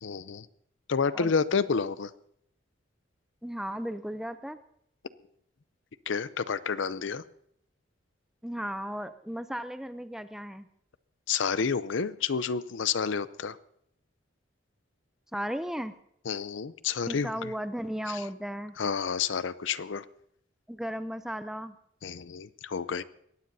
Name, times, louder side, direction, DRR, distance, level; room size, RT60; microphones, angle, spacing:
voice 1, 0.0-0.5 0.9-2.1 6.1-7.2 11.3-13.6 16.3-17.5 18.1-18.2 18.8-20.0 22.0-23.0, left 6 dB, 75° left, 15 dB, 0.6 m, -30 dB
voice 2, 3.4-4.6 8.4-10.7 15.3-16.0 17.1-18.7 20.7-21.8, equal, ahead, 11 dB, 0.5 m, -35 dB
22.5 x 17.0 x 2.7 m, 0.71 s
head